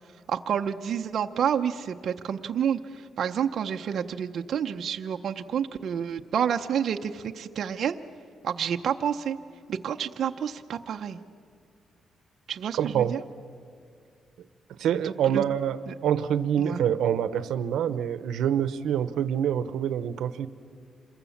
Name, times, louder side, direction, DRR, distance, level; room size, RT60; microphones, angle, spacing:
voice 1, 0.3-8.0 8.4-9.4 9.7-11.2 12.5-13.2 15.0-15.4 15.9-16.0 16.6-16.8, right 8 dB, 50° right, 5 dB, 0.6 m, -29 dB
voice 2, 12.8-13.1 14.8-20.5, right 9 dB, 85° right, 14 dB, 0.8 m, -26 dB
27.0 x 22.0 x 7.1 m, 2.3 s
cardioid pair, 175°, 0 cm